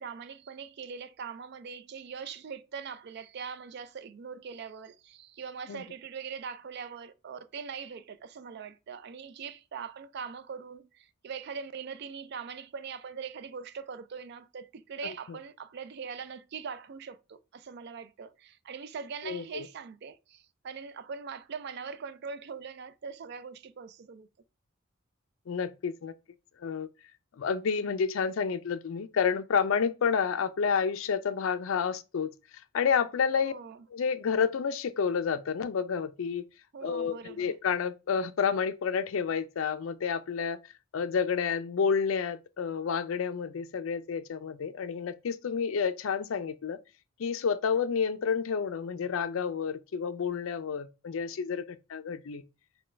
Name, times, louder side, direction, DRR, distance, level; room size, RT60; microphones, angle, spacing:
voice 1, 0.0-24.3 33.4-33.8 36.7-37.6, right 6 dB, 55° right, 0.4 m, -42 dB
voice 2, 19.2-19.7 25.5-26.1 26.6-26.9 27.4-32.3 32.7-33.5 33.9-36.4 36.8-40.6 40.9-46.8 47.2-51.6 51.9-52.4, left 6 dB, 80° left, 0.4 m, -29 dB
6.1 x 2.2 x 3.2 m
head